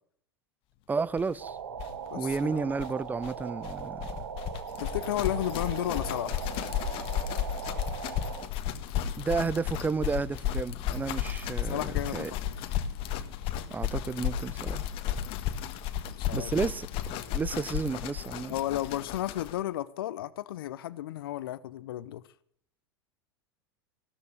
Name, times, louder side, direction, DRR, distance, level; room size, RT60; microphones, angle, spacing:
voice 1, 0.9-1.6 2.2-4.1 9.2-12.3 13.7-14.9 16.3-18.5, right 4 dB, 15° right, 0.5 m, -32 dB
sound 1, 1.2-1.3 1.5-1.6 1.7-19.6, left 10 dB, 45° left, 1.4 m, -34 dB
sound 2, 1.4-8.5, right 8 dB, 70° right, 1.3 m, -40 dB
voice 2, 2.1-2.7 4.8-6.4 11.6-12.7 16.2-16.5 18.5-22.2, left 13 dB, 65° left, 0.8 m, -33 dB
15.0 x 13.0 x 6.7 m
figure-of-eight pair, 85°, 13 cm